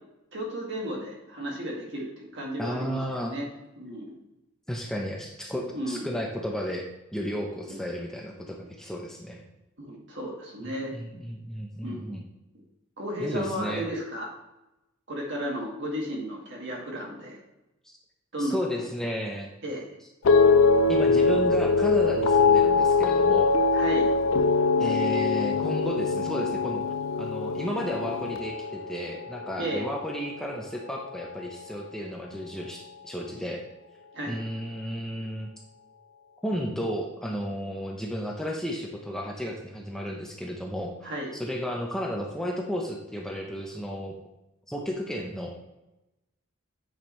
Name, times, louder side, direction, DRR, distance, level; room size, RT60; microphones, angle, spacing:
voice 1, 0.3-3.5 3.8-4.1 5.7-6.1 7.7-7.8 9.8-10.9 11.8-12.2 13.0-14.3 15.1-17.4 18.3-18.9 19.6-19.8 23.7-24.1 29.6-29.8 34.1-34.4 41.0-41.3, right 1 dB, 60° right, -2 dB, 1.9 m, -34 dB
voice 2, 2.6-3.3 4.7-9.4 10.9-12.2 13.2-13.9 17.8-18.0 18.4-19.5 20.9-23.5 24.8-26.8 27.2-33.6 34.2-35.5 36.4-41.1 41.4-44.2 44.7-45.5, equal, 5° left, 0 dB, 0.6 m, -33 dB
sound 1, 20.2-30.6 30.9-31.5, left 4 dB, 65° left, 0.4 m, -23 dB
8.8 x 5.2 x 3.1 m, 0.95 s
head